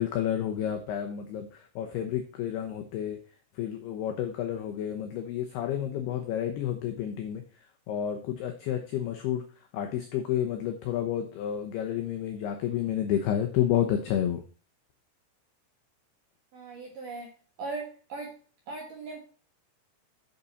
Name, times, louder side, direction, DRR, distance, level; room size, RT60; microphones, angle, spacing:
voice 1, 0.0-1.5 1.8-3.2 3.6-7.4 7.9-9.4 9.7-14.4, left 10 dB, 90° left, 4 dB, 2.2 m, -30 dB
voice 2, 16.5-17.3 17.6-18.3 18.7-19.2, right 3 dB, 65° right, 0 dB, 2.1 m, -38 dB
8.7 x 6.9 x 4.1 m, 0.40 s
omnidirectional pair, 6.0 m